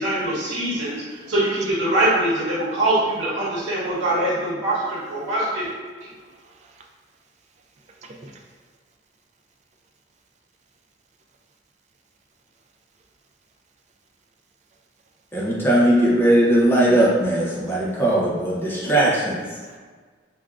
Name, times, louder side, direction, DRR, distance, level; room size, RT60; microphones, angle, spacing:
voice 1, 0.0-5.6 6.0-6.1, right 1 dB, 85° right, -9 dB, 0.9 m, -23 dB
voice 2, 6.1-6.9 7.8-8.5 17.7-18.0 18.7-18.9 19.6-19.8, right 2 dB, 40° right, 1 dB, 0.3 m, -49 dB
voice 3, 15.3-19.5, right 1 dB, 10° left, -5 dB, 0.5 m, -19 dB
3.3 x 2.4 x 2.3 m, 1.5 s
head